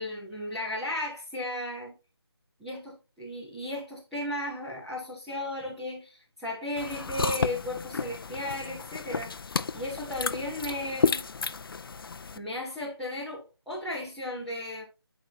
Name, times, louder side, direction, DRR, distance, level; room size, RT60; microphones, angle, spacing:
voice 1, 0.0-1.9 2.6-11.2 12.3-14.8, left 1 dB, ahead, 1.1 m, -35 dB
sound 1, 6.8-12.4, left 5 dB, 60° left, 0.5 m, -32 dB
8.8 x 4.6 x 2.8 m
figure-of-eight pair, 170°, 13 cm